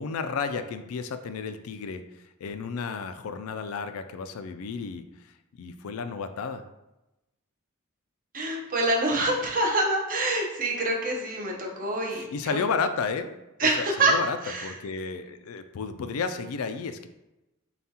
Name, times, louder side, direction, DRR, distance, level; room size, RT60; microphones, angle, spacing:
voice 1, 0.0-5.0 5.6-6.6 12.1-17.1, left 5 dB, 75° left, 9 dB, 0.4 m, -32 dB
voice 2, 8.3-12.6 13.6-14.1 14.4-14.7, right 2 dB, 40° right, -1 dB, 0.8 m, -26 dB
7.0 x 2.3 x 2.8 m, 0.98 s
head